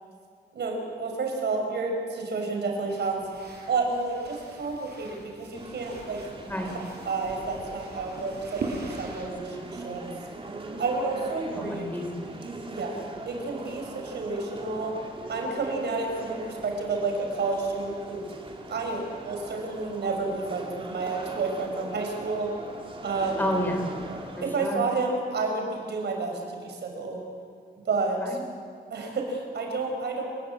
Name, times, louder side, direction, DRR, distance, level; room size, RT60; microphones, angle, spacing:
voice 1, 0.5-3.2 3.7-6.2 7.1-10.0 10.8-11.8 12.7-14.9 15.3-18.2 18.7-22.5 23.0-23.4 24.4-27.2 27.8-28.2 28.9-30.2, right 3 dB, 90° right, 2 dB, 6.5 m, -30 dB
sound 1, 2.9-9.2, right 3 dB, 75° right, 7.0 m, -41 dB
sound 2, 5.5-24.6, right 2 dB, 30° right, 3.4 m, -41 dB
voice 2, 9.2-10.1 11.5-12.4 23.4-23.9 24.4-24.8 28.2-28.4, equal, 10° left, 3 dB, 4.6 m, -32 dB
29.5 x 20.5 x 8.6 m, 2.1 s
wide cardioid pair, 155°, 17 cm